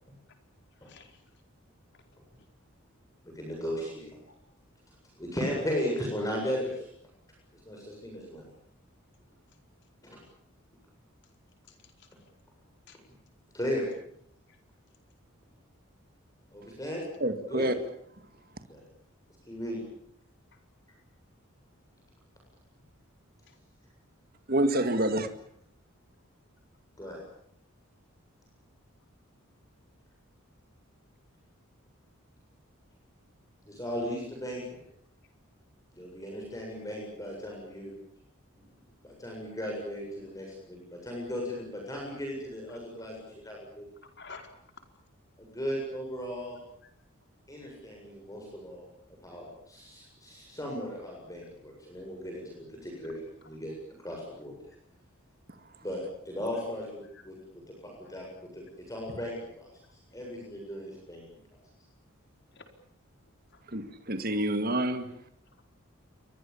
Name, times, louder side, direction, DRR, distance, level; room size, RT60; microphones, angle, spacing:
voice 1, 0.8-1.2 4.3-4.4 11.7-12.1 12.9-13.0 23.4-23.6 42.7-42.8 44.2-44.5 44.8-44.9 46.2-46.3 53.4-53.5 57.1-57.2 62.5-62.6 63.5-63.6, left 4 dB, 55° left, 5 dB, 4.7 m, -50 dB
voice 2, 3.2-4.1 5.2-6.9 7.5-8.5 10.0-10.2 13.5-13.8 16.5-17.0 17.5-17.7 18.7-18.8 19.5-19.8 27.0-27.2 33.7-34.8 35.9-37.9 39.0-43.8 45.4-46.6 47.5-48.8 49.2-52.6 52.8-53.7 54.0-54.5 55.8-61.2, equal, 15° left, -1 dB, 7.6 m, -36 dB
voice 3, 17.2-17.7 24.5-25.3 63.7-65.1, right 1 dB, 45° right, 8 dB, 2.2 m, -27 dB
29.0 x 24.0 x 7.2 m, 0.69 s
head